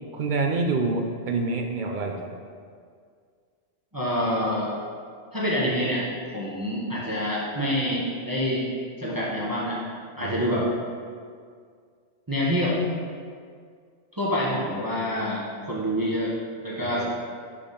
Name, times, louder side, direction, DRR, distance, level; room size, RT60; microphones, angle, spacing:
voice 1, 0.1-2.3 10.2-10.6 16.8-17.0, right 3 dB, 60° right, 3 dB, 0.5 m, -27 dB
voice 2, 3.9-4.7 5.3-6.0 6.3-8.6 9.0-9.8 10.2-10.7 12.3-12.8 14.1-16.3 16.6-17.0, equal, 20° right, -6 dB, 0.9 m, -26 dB
6.7 x 3.5 x 5.2 m, 2.1 s
omnidirectional pair, 1.2 m